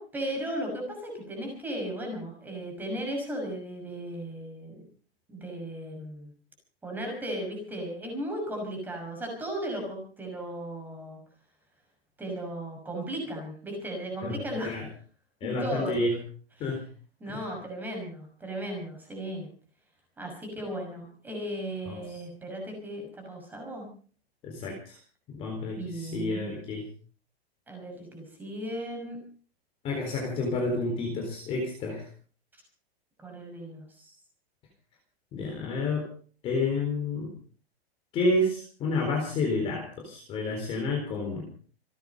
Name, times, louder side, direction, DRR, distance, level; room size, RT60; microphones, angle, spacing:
voice 1, 0.0-4.8 5.3-6.3 6.8-11.2 12.2-14.8 15.4-15.9 16.6-16.8 17.2-19.5 20.2-23.9 25.7-26.5 27.7-29.2 33.2-34.1, right 1 dB, 5° right, 1 dB, 5.9 m, -36 dB
voice 2, 14.2-14.9 15.4-16.2 16.6-16.8 17.3-17.4 21.9-22.0 24.4-25.0 25.3-26.8 29.8-32.1 35.3-36.1 36.4-37.3 38.1-41.5, left 2 dB, 20° left, 1 dB, 3.9 m, -30 dB
28.0 x 9.4 x 5.3 m, 0.43 s
supercardioid pair, 180°, 32 cm